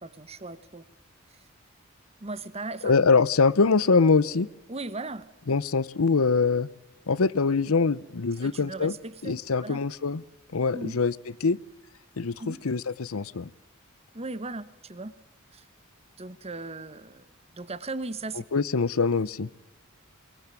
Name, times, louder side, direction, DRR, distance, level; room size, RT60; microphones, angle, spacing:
voice 1, 0.0-0.8 2.2-2.9 4.7-5.3 8.4-9.8 10.7-11.0 12.4-12.6 14.1-15.1 15.5-15.7 16.2-17.3 17.5-18.4, right 2 dB, 30° right, 15 dB, 1.2 m, -37 dB
voice 2, 2.8-4.5 5.5-6.7 7.1-8.9 9.2-10.2 10.5-11.1 11.4-11.6 12.2-13.5 18.5-19.5, left 4 dB, 90° left, 19 dB, 0.8 m, -23 dB
23.0 x 23.0 x 9.0 m, 1.0 s
head